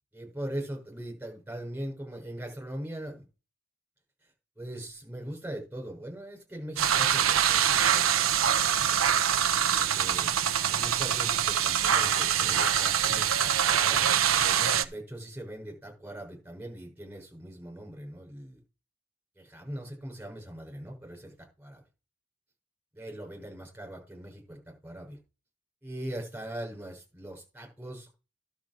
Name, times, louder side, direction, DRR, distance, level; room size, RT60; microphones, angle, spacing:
voice 1, 0.1-3.2 4.6-9.0 9.8-10.3 10.7-18.6 19.4-21.8 22.9-25.2 25.8-28.2, right 1 dB, 5° right, 7.0 m, -41 dB
sound 1, 6.8-14.8, right 9 dB, 70° right, 0.9 m, -24 dB
12.0 x 7.4 x 4.8 m
head